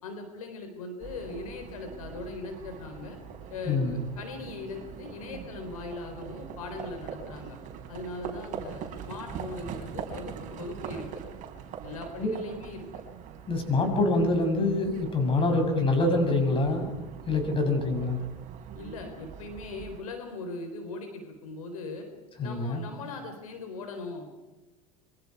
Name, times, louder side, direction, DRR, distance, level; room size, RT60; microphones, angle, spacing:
voice 1, 0.0-3.2 3.5-7.6 7.9-11.1 11.8-12.9 15.4-15.6 17.5-17.8 18.7-22.1 22.4-24.3, left 3 dB, 85° left, 5 dB, 3.9 m, -40 dB
Livestock farm animals working animals, 1.0-20.0, right 8 dB, 45° right, 4.2 m, -42 dB
voice 2, 3.7-4.0 12.2-12.4 13.5-16.9 17.3-18.2 22.4-22.8, left 2 dB, 30° left, 4 dB, 7.0 m, -25 dB
27.0 x 24.0 x 4.8 m, 1.2 s
hypercardioid pair, 95°, 18 cm